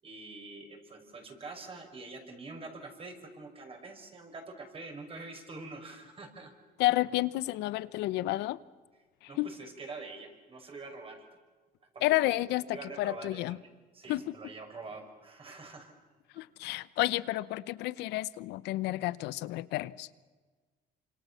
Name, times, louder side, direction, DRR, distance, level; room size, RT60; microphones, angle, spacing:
voice 1, 0.0-6.5 9.3-11.3 11.9-12.2 12.7-15.9, right 3 dB, 35° right, 6.1 m, -45 dB
voice 2, 6.8-8.6 9.4-9.5 12.0-13.6 14.1-14.2 16.4-20.1, left 17 dB, 90° left, 0.9 m, -30 dB
28.0 x 25.5 x 7.1 m
cardioid pair, 110°, 17 cm